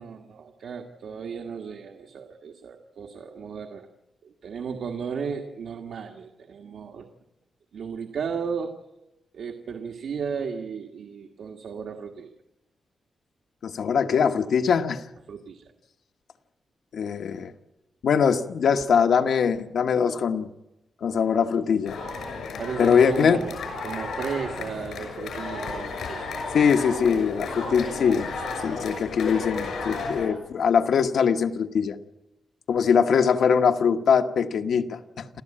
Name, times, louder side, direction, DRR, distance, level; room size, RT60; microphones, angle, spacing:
voice 1, 0.0-3.9 4.2-7.1 7.7-8.8 9.3-12.4 15.3-15.7 22.6-26.6, right 6 dB, 70° right, 3 dB, 1.6 m, -35 dB
voice 2, 13.6-15.0 16.9-17.5 18.0-20.5 21.0-22.0 22.8-23.4 26.5-28.3 28.6-32.0 32.7-35.3, left 6 dB, 65° left, 6 dB, 1.2 m, -22 dB
sound 1, 21.9-30.3, left 3 dB, 90° left, 6.6 m, -33 dB
28.0 x 14.0 x 8.8 m, 0.95 s
wide cardioid pair, 160°, 0 cm